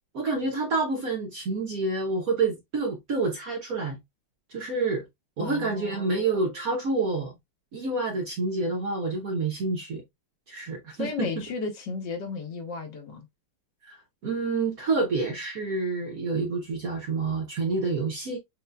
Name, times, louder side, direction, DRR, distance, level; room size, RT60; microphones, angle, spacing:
voice 1, 0.1-4.0 4.5-5.0 5.4-7.4 7.7-10.0 10.5-11.3 13.8-18.4, right 3 dB, 60° right, 1.0 m, -28 dB
voice 2, 5.4-6.2 11.0-13.3, left 4 dB, 65° left, 1.4 m, -34 dB
6.5 x 2.6 x 2.2 m
omnidirectional pair, 2.3 m